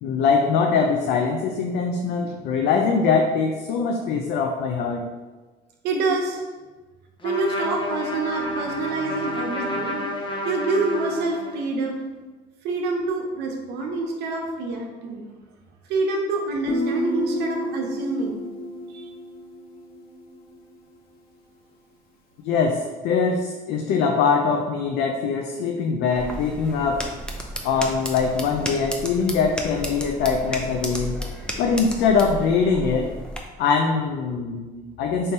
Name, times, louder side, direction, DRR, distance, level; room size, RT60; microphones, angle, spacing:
voice 1, 0.0-5.1 22.4-27.0 27.6-31.2 31.6-33.1 33.6-35.3, left 5 dB, 80° left, 3 dB, 0.4 m, -22 dB
voice 2, 5.8-6.4 7.2-12.0 12.6-15.2 15.9-18.4 18.9-19.1, right 3 dB, 85° right, 1 dB, 0.8 m, -27 dB
Trumpet, 7.2-11.8, left 1 dB, 30° left, 0.8 m, -30 dB
Guitar, 16.7-20.3, equal, 65° left, 0.8 m, -30 dB
sound 1, 26.1-33.4, equal, 5° left, 0.5 m, -33 dB
3.7 x 2.7 x 4.2 m, 1.3 s
cardioid pair, 110°, 17 cm